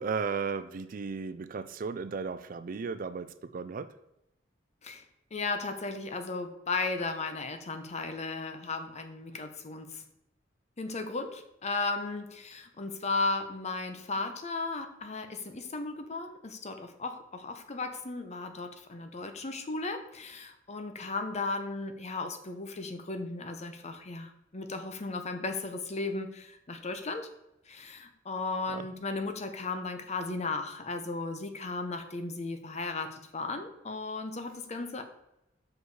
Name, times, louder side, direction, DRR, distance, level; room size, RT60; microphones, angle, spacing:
voice 1, 0.0-3.3 3.5-3.9 28.7-28.8, right 5 dB, 50° right, 13 dB, 0.4 m, -34 dB
voice 2, 5.3-10.0 10.8-27.3 27.7-35.0, left 3 dB, 35° left, 7 dB, 0.8 m, -35 dB
6.3 x 5.2 x 4.8 m, 0.85 s
head